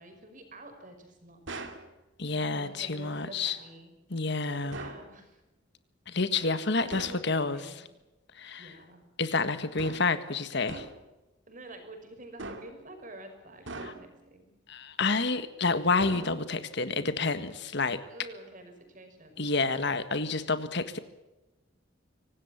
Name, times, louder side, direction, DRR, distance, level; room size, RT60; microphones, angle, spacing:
voice 1, 0.0-1.7 2.5-3.9 4.5-5.4 6.4-7.9 8.6-9.0 11.5-14.5 18.1-19.8, right 1 dB, 40° right, 6 dB, 5.7 m, -49 dB
sound 1, 1.5-1.9 4.7-5.1 6.9-7.3 9.8-10.2 10.7-11.1 12.4-12.9 13.7-14.2 16.0-16.7, right 2 dB, 65° right, 2.9 m, -41 dB
voice 2, 2.2-3.6 4.1-4.8 6.1-7.7 8.3-8.7 9.2-10.9 13.8-13.9 14.7-18.0 19.4-21.0, left 3 dB, 60° left, 11 dB, 1.7 m, -29 dB
25.0 x 18.5 x 7.3 m, 1.0 s
head